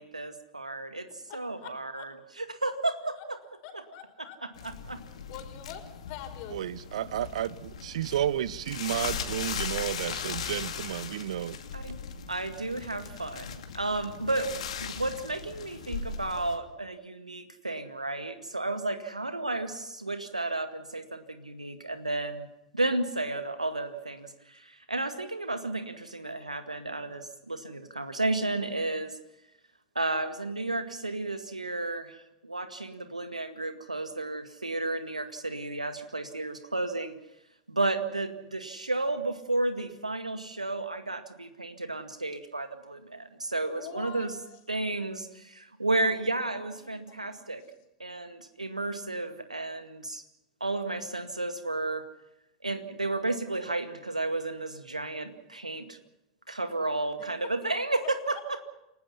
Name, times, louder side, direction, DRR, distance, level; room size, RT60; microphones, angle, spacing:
voice 1, 0.0-3.4 3.7-3.8 4.6-5.0 11.7-12.0 12.3-22.5 22.7-29.2 30.0-32.2 32.4-37.2 37.7-44.3 44.7-47.6 48.0-50.2 50.6-52.0 52.6-56.0 56.5-58.4, right 2 dB, 90° right, 2.0 m, -32 dB
voice 2, 1.3-2.1 3.2-3.3 3.6-4.4 5.3-6.6 14.2-14.7 35.0-35.4 43.7-44.3 46.0-47.6 57.2-57.3 58.3-58.4, left 10 dB, 45° left, 4.6 m, -46 dB
sound 1, 4.5-16.6, left 7 dB, 65° left, 2.6 m, -38 dB
voice 3, 6.5-11.6, right 11 dB, 60° right, 0.7 m, -32 dB
29.0 x 19.0 x 5.8 m
figure-of-eight pair, 95°, 4 cm